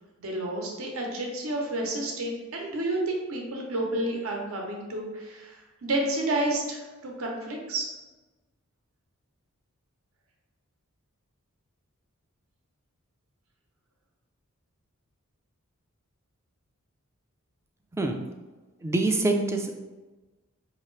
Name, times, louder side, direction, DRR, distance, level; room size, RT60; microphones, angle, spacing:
voice 1, 0.2-7.9, right 1 dB, 75° right, 0 dB, 0.8 m, -30 dB
voice 2, 17.9-18.3 18.8-19.7, right 2 dB, 15° right, 3 dB, 0.3 m, -25 dB
5.2 x 2.8 x 3.1 m, 1.2 s
head